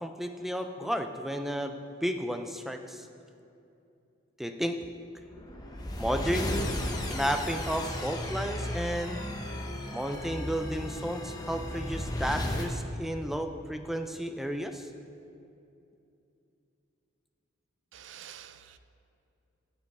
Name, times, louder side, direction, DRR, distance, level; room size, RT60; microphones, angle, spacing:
voice 1, 0.0-1.7 2.0-3.1 4.4-4.8 6.0-6.8 7.1-9.2 9.9-14.9, equal, ahead, 6 dB, 0.4 m, -32 dB
sound 1, 5.3-12.7, left 1 dB, 20° left, 0.8 m, -34 dB
voice 2, 17.9-18.8, right 10 dB, 70° right, 12 dB, 0.4 m, -48 dB
9.5 x 9.5 x 4.2 m, 2.7 s
head